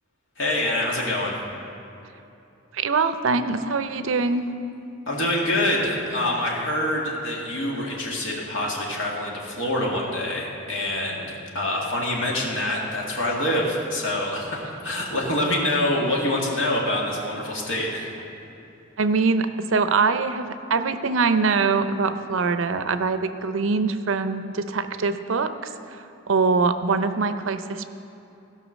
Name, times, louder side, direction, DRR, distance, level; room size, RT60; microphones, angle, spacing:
voice 1, 0.4-1.4 5.1-18.1, left 1 dB, 70° left, -3 dB, 2.1 m, -25 dB
voice 2, 2.7-4.5 19.0-25.5 25.9-26.0 26.3-27.8, right 4 dB, 75° right, 10 dB, 0.5 m, -23 dB
16.0 x 5.7 x 6.3 m, 2.8 s
head